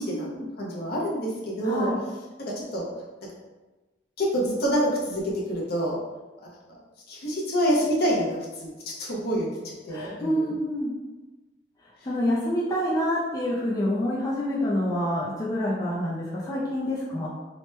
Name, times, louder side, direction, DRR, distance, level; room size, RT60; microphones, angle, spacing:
voice 1, 0.0-0.5 1.6-2.0 9.9-10.9 12.0-17.3, equal, 20° left, -6 dB, 0.4 m, -27 dB
voice 2, 0.6-1.9 2.4-2.8 4.2-5.2 5.5-6.0 7.1-8.7 9.0-10.5, equal, 55° left, -3 dB, 0.7 m, -27 dB
3.0 x 2.1 x 3.1 m, 1.2 s
head